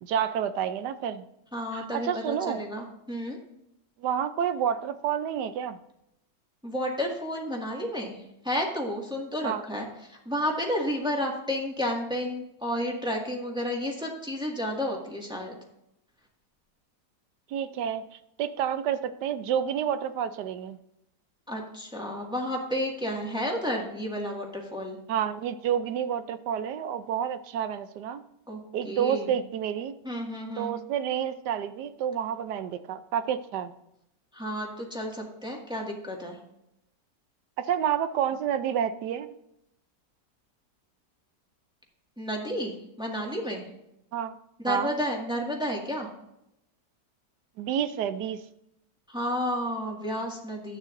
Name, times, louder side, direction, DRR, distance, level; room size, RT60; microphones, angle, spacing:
voice 1, 0.0-1.2 1.7-2.6 4.0-5.8 9.4-9.6 17.5-18.0 18.4-20.8 25.1-28.2 28.7-30.0 30.6-33.7 37.6-39.3 44.1-44.3 44.7-44.9 47.6-48.4, right 9 dB, 75° right, 12 dB, 1.2 m, -29 dB
voice 2, 1.5-3.4 6.6-15.6 21.5-25.0 28.5-29.3 30.0-30.7 34.3-36.4 42.2-43.7 44.6-46.1 49.1-50.8, equal, 5° right, -1 dB, 1.7 m, -31 dB
12.5 x 9.1 x 2.6 m, 0.82 s
omnidirectional pair, 1.9 m